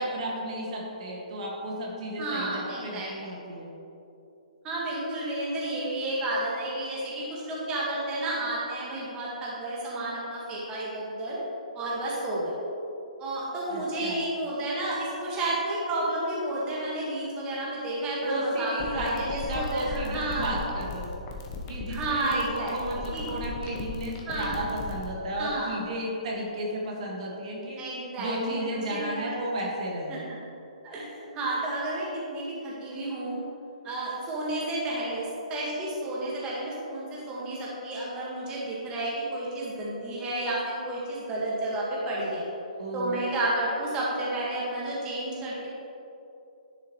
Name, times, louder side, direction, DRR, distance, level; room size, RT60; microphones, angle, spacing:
voice 1, 0.0-3.7 13.7-14.3 18.2-21.2 21.7-27.8 28.2-30.2 42.8-43.2, right 1 dB, 55° right, -2 dB, 1.9 m, -33 dB
voice 2, 2.2-3.4 4.6-11.4 11.7-12.5 13.2-20.8 21.9-23.2 24.3-24.7 25.4-25.8 27.8-29.3 30.1-30.3 30.8-33.4 33.8-42.5 42.9-45.7, right 1 dB, 20° right, -6 dB, 1.7 m, -31 dB
sound 1, 18.7-25.0, left 4 dB, 30° left, 1.1 m, -37 dB
11.0 x 6.8 x 3.2 m, 2.9 s
hypercardioid pair, 150°, 4 cm